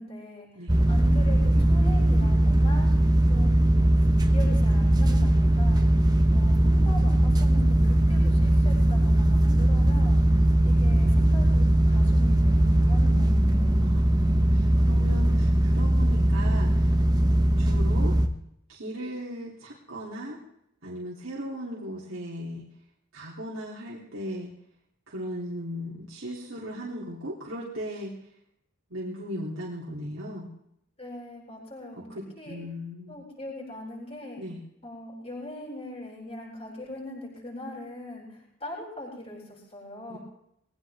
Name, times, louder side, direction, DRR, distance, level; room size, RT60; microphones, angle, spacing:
voice 1, 0.0-2.9 3.3-3.9 4.3-5.9 6.3-10.2 10.6-13.9 31.0-32.0 32.4-32.6 33.1-34.4 34.8-40.2, left 1 dB, 30° left, -3 dB, 7.9 m, -41 dB
sound 1, 0.7-18.3, right 1 dB, 20° right, 1.2 m, -20 dB
voice 2, 13.8-16.9 17.6-18.2 18.7-20.4 20.8-22.7 23.1-24.5 25.1-28.1 28.9-30.5 31.9-33.2 34.4-34.6 40.1-40.2, equal, 80° right, -5 dB, 3.2 m, -37 dB
21.5 x 17.5 x 3.6 m, 0.77 s
head